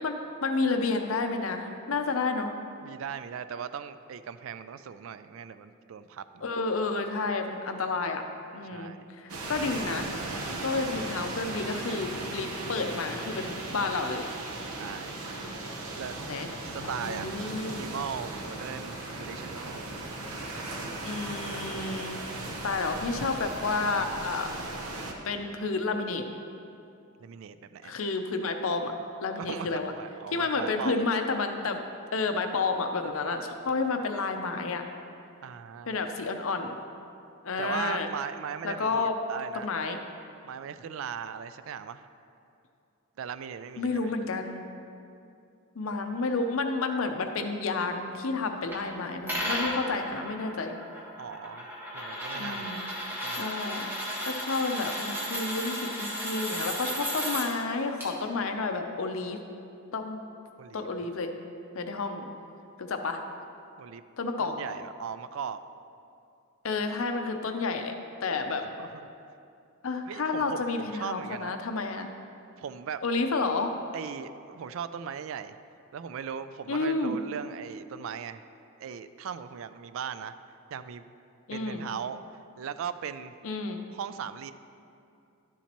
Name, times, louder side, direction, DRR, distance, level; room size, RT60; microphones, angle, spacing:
voice 1, 0.0-2.6 6.4-8.2 8.5-10.1 10.6-14.3 16.2-16.5 16.8-17.8 21.0-22.2 22.6-24.5 25.2-26.2 27.8-28.9 29.2-29.9 30.3-31.8 32.1-34.8 35.9-36.8 37.4-38.1 38.6-39.2 39.6-40.0 43.8-44.6 45.8-50.7 52.3-59.4 59.9-60.2 60.7-61.3 61.7-62.3 62.8-63.2 64.2-64.5 66.6-67.9 68.2-68.6 69.8-72.1 73.0-73.7 76.7-77.2 81.5-81.8 83.4-83.8, left 3 dB, 70° left, 6 dB, 0.6 m, -30 dB
voice 2, 2.8-6.5 8.7-9.1 14.8-15.3 16.0-16.1 16.6-17.4 17.7-20.0 27.2-27.9 29.4-31.0 35.4-36.0 37.6-39.7 40.4-42.1 43.2-44.1 51.2-52.8 53.2-53.5 60.6-60.9 63.8-64.0 64.4-65.6 68.6-69.1 70.1-71.6 72.6-73.0 73.9-75.6 75.9-78.4 78.8-80.4 80.7-81.0 81.5-82.2 82.6-83.3 83.9-84.5, right 7 dB, 65° right, 12 dB, 0.3 m, -38 dB
sound 1, 9.3-25.1, right 2 dB, 85° right, 0.9 m, -37 dB
sound 2, 48.7-48.8 49.3-57.5 58.0-58.1, equal, 10° right, 1.3 m, -34 dB
11.5 x 7.1 x 3.0 m, 2.6 s
head